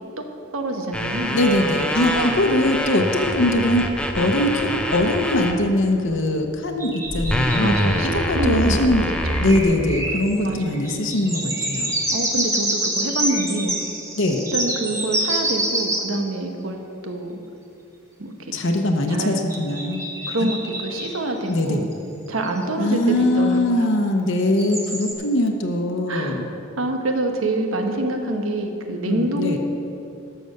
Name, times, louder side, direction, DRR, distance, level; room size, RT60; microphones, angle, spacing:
voice 1, 0.5-1.3 2.1-2.4 7.6-9.5 10.4-11.1 12.1-13.8 14.5-16.8 17.0-17.4 18.2-18.6 19.1-19.4 20.3-21.9 22.3-23.9 26.1-26.4 26.8-29.6, right 1 dB, 80° right, 4 dB, 1.2 m, -26 dB
sound 1, 0.9-5.5 6.1-6.3 7.1-9.6, equal, 5° left, 0.6 m, -25 dB
voice 2, 1.3-9.1 9.4-11.9 14.2-14.4 18.5-20.0 21.5-21.8 22.8-26.5 28.9-29.6, left 1 dB, 60° left, 3 dB, 0.9 m, -21 dB
sound 2, 6.8-8.0 9.1-16.2 19.5-21.2 21.9-22.0 22.3-22.6 24.6-25.1, right 1 dB, 15° right, 1.3 m, -27 dB
12.0 x 7.0 x 6.5 m, 2.7 s
head